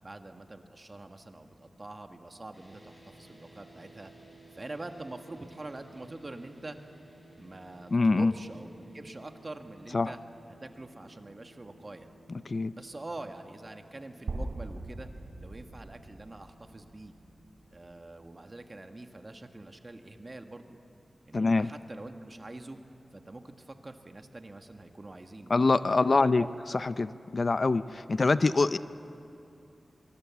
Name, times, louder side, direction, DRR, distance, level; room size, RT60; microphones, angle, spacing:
voice 1, 0.0-4.1 4.5-6.8 7.4-10.2 10.6-12.1 12.7-15.1 15.4-17.1 17.7-20.8 21.2-22.8 23.1-25.5 26.1-26.5, right 2 dB, 35° right, 6 dB, 1.5 m, -45 dB
sound 1, 2.5-18.9, right 2 dB, 15° left, 6.0 m, -57 dB
voice 2, 7.9-8.3 9.9-10.1 12.3-12.7 21.3-21.7 25.5-26.4 26.7-28.8, left 3 dB, 50° left, 14 dB, 0.5 m, -25 dB
sound 2, 14.3-18.2, right 2 dB, 75° right, 3.4 m, -41 dB
23.0 x 23.0 x 7.2 m, 2.7 s
wide cardioid pair, 90°, 0 cm